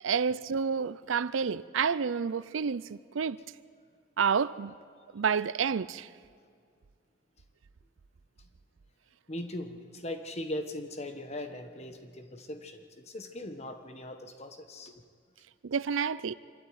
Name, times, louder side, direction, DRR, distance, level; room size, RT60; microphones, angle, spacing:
voice 1, 0.0-3.4 4.2-4.7 5.1-6.1 15.6-16.3, right 6 dB, 85° right, 0.5 m, -29 dB
voice 2, 9.3-14.9, left 1 dB, 35° left, 1.3 m, -39 dB
25.5 x 12.5 x 9.5 m
head